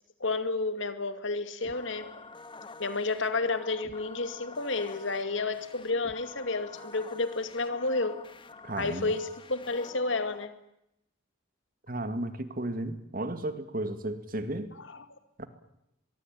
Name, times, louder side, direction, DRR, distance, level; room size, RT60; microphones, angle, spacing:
voice 1, 0.2-2.2 2.8-8.2 8.8-10.5 14.8-15.1, left 3 dB, 70° left, 11 dB, 2.3 m, -31 dB
sound 1, 1.6-10.4, left 3 dB, 25° left, 1.6 m, -48 dB
voice 2, 8.6-9.1 11.9-14.7 15.4-15.5, right 1 dB, 45° right, 10 dB, 2.3 m, -34 dB
23.5 x 23.0 x 9.1 m, 0.83 s
head